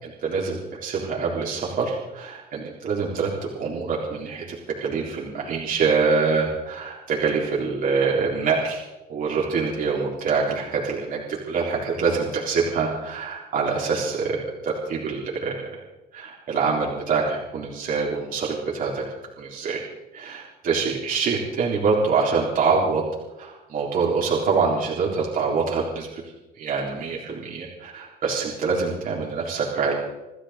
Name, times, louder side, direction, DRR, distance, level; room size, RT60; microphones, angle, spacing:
voice 1, 0.0-14.4 14.6-15.7 16.1-19.0 19.4-19.9 20.1-23.0 23.4-26.1 26.6-30.0, right 5 dB, 55° right, -3 dB, 3.9 m, -25 dB
28.5 x 12.0 x 3.8 m, 1.0 s
cardioid pair, 110°, 17 cm